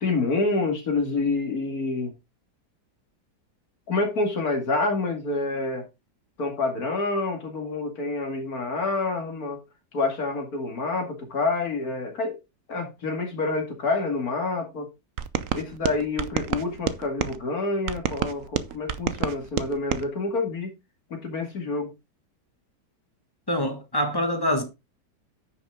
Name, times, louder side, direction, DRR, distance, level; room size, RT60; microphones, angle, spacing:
voice 1, 0.0-2.1 3.9-5.8 6.4-9.6 9.9-12.4 12.7-14.9 15.5-20.7 21.1-21.9, left 3 dB, 60° left, 2.5 m, -27 dB
sound 1, 15.2-17.4 17.9-20.0, right 9 dB, 60° right, 1.0 m, -29 dB
voice 2, 23.5-24.6, equal, 15° left, 1.4 m, -25 dB
9.8 x 6.0 x 3.7 m
omnidirectional pair, 1.8 m